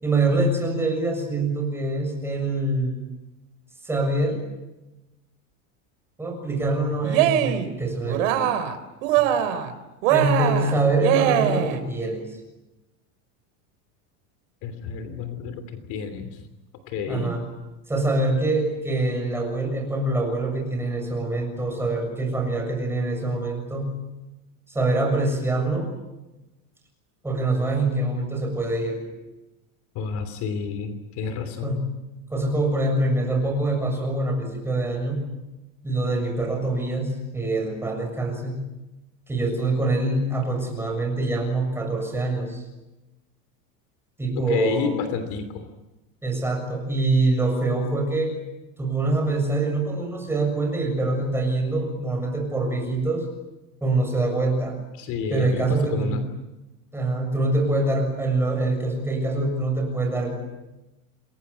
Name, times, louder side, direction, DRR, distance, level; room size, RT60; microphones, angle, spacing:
voice 1, 0.0-3.0 3.8-4.5 6.2-8.5 10.1-12.4 17.1-17.4 17.9-23.9 24.7-25.9 27.2-29.0 31.6-32.0 32.3-35.2 35.8-38.6 39.3-42.6 44.2-44.9 46.2-48.4 48.8-53.3 53.8-54.8 55.3-56.2 56.9-60.4, right 2 dB, 5° right, 2 dB, 7.0 m, -24 dB
Cheering, 7.0-7.7 8.1-8.8 9.0-9.7 10.0-11.8, right 11 dB, 80° right, 3.7 m, -22 dB
voice 2, 14.6-16.4 16.9-17.3 29.9-31.8 44.5-45.7 55.0-56.2, left 6 dB, 45° left, 9 dB, 3.2 m, -30 dB
28.5 x 22.5 x 8.4 m, 1.0 s
supercardioid pair, 165°, 40 cm